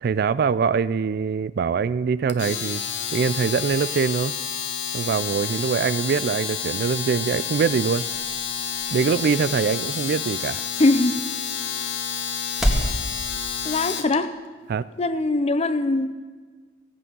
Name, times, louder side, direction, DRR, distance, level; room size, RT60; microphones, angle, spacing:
voice 1, 0.0-2.8 3.1-4.3 4.9-8.0 8.9-10.6 14.7-14.9, right 6 dB, 55° right, 17 dB, 0.3 m, -23 dB
Domestic sounds home sounds, 2.3-14.1, left 8 dB, 70° left, 0.8 m, -29 dB
sound 1, 6.7-13.0, equal, ahead, 1.7 m, -32 dB
voice 2, 10.8-11.2 13.6-14.3 15.0-16.1, left 2 dB, 35° left, 10 dB, 0.6 m, -21 dB
16.0 x 8.4 x 5.4 m, 1.4 s
head